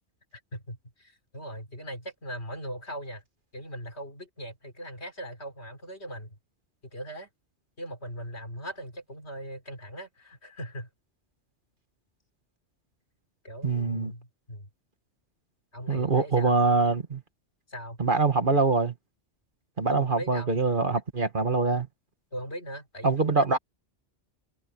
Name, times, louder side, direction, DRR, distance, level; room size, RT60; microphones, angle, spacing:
voice 1, 0.5-3.2 3.5-6.4 6.9-7.3 7.8-10.9 13.4-14.7 15.7-16.5 17.7-18.0 19.9-20.6 22.3-23.6, equal, 65° left, 4.3 m, -40 dB
voice 2, 13.6-14.1 15.9-17.2 18.0-18.9 19.8-21.9 23.0-23.6, right 4 dB, 45° right, 1.7 m, -24 dB
omnidirectional pair, 1.2 m